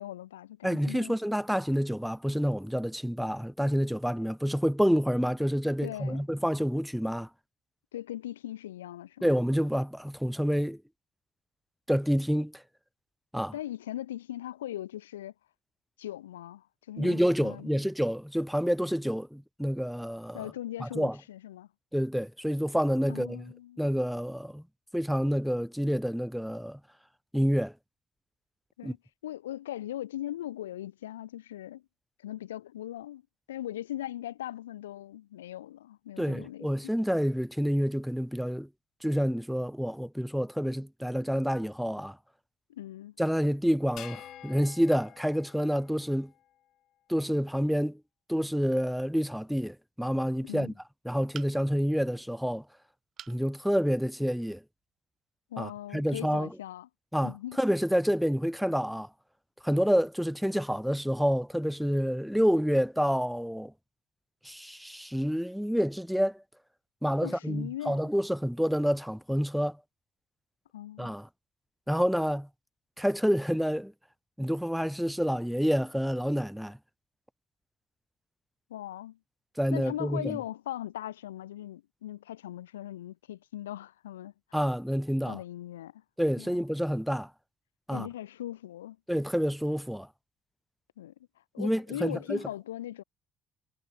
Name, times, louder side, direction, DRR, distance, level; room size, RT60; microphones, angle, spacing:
voice 1, 0.0-1.2 5.8-6.2 7.9-9.3 13.5-15.3 16.0-17.7 20.3-21.7 23.1-23.8 28.8-29.0 29.2-31.8 32.2-33.2 33.5-36.7 42.7-43.1 50.4-50.7 55.5-56.9 57.2-57.6 67.2-68.1 70.7-71.1 78.7-79.2 79.7-84.3 85.3-86.0 86.4-86.6 87.9-89.0 91.0-91.1 91.5-93.0, left 13 dB, 80° left, 0.6 m, -39 dB
voice 2, 0.6-7.3 9.2-10.8 11.9-12.6 13.3-13.5 17.0-20.5 20.8-21.2 21.9-23.5 23.8-24.6 24.9-26.8 27.3-27.7 28.8-28.9 36.2-38.7 39.0-42.2 43.2-46.3 47.1-48.0 48.3-50.7 51.0-52.6 53.3-54.6 55.6-56.5 57.1-59.1 59.6-63.7 64.4-66.4 67.0-69.8 71.0-71.3 71.9-72.5 73.0-73.9 74.4-76.8 79.6-80.4 84.5-85.4 86.2-87.3 87.9-88.1 89.1-90.1 91.6-92.4, equal, ahead, 1.7 m, -28 dB
sound 1, 44.0-46.5, left 12 dB, 60° left, 5.4 m, -49 dB
sound 2, 51.3-51.9 53.2-53.4 54.0-54.1 54.4-54.5, right 9 dB, 55° right, 3.1 m, -46 dB
figure-of-eight pair, 45°, 0 cm